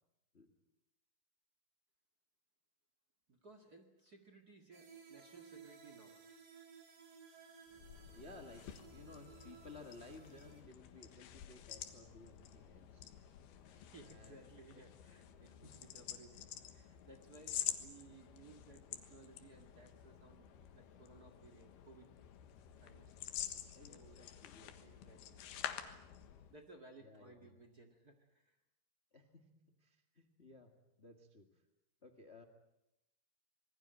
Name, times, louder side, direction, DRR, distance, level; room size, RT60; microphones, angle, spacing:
voice 1, 3.3-6.2 13.7-20.5 20.7-22.1 22.8-23.2 23.9-24.2 24.8-25.4 26.5-28.6, right 3 dB, 35° right, 6 dB, 1.6 m, -60 dB
sound 1, 4.7-10.6, right 6 dB, 50° right, 4.6 m, -59 dB
sound 2, 7.7-26.6, left 10 dB, 85° left, 3.4 m, -49 dB
voice 2, 8.1-13.1 14.0-14.4 14.7-14.8 15.5-15.8 23.7-24.9 27.0-27.5 29.1-31.5 32.0-32.4, left 3 dB, 45° left, 7 dB, 0.8 m, -57 dB
26.5 x 20.5 x 9.0 m, 0.87 s
omnidirectional pair, 4.4 m